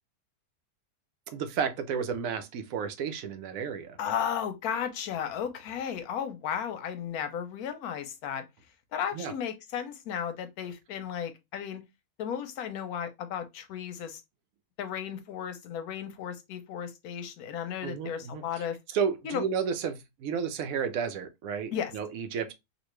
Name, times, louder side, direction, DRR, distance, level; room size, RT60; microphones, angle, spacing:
voice 1, 1.3-4.0 9.1-9.3 17.8-18.6 18.9-22.5, right 6 dB, 70° right, 0.9 m, -32 dB
voice 2, 4.0-8.5 8.9-11.8 12.2-14.2 14.8-18.8 19.2-19.4 21.7-21.9, left 8 dB, 85° left, 1.1 m, -34 dB
3.1 x 2.5 x 3.0 m
omnidirectional pair, 1.6 m